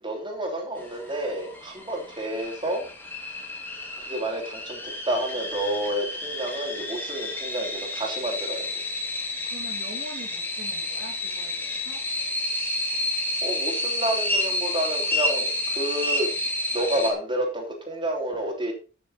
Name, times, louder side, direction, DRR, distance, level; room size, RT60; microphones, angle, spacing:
voice 1, 0.0-2.9 4.0-8.8 13.4-16.3 16.7-18.7, right 1 dB, 25° right, 1 dB, 3.3 m, -30 dB
sound 1, 0.8-17.1, left 1 dB, 10° left, 2.6 m, -30 dB
voice 2, 9.0-12.0, right 1 dB, 55° right, -4 dB, 2.8 m, -43 dB
14.0 x 6.8 x 4.2 m, 0.35 s
head